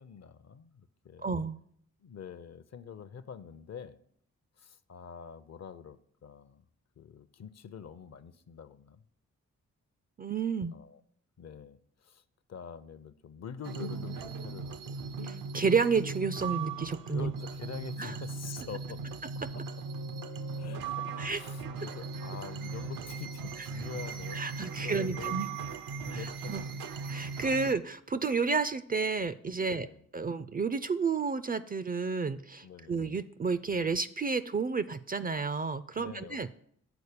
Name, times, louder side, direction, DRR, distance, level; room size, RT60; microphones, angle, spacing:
voice 1, 0.0-1.3 2.0-4.0 4.6-6.7 7.0-9.0 10.7-11.0 11.4-12.2 12.5-15.0 17.1-19.2 20.6-25.4 26.0-26.5 27.3-27.4 29.6-30.0 32.6-33.1 35.9-36.5, left 7 dB, 50° left, 14 dB, 0.6 m, -46 dB
voice 2, 1.2-1.6 10.2-10.8 15.2-17.3 18.0-18.1 21.2-21.4 23.6-23.7 24.3-25.5 26.1-26.6 27.1-29.9 30.1-36.5, right 5 dB, 25° right, 14 dB, 0.4 m, -31 dB
sound 1, 13.6-27.7, right 4 dB, 80° right, 0.6 m, -38 dB
sound 2, 19.1-25.8 26.4-26.5, left 3 dB, 70° left, 1.0 m, -55 dB
7.0 x 4.2 x 6.6 m, 0.67 s
supercardioid pair, 50°, 34 cm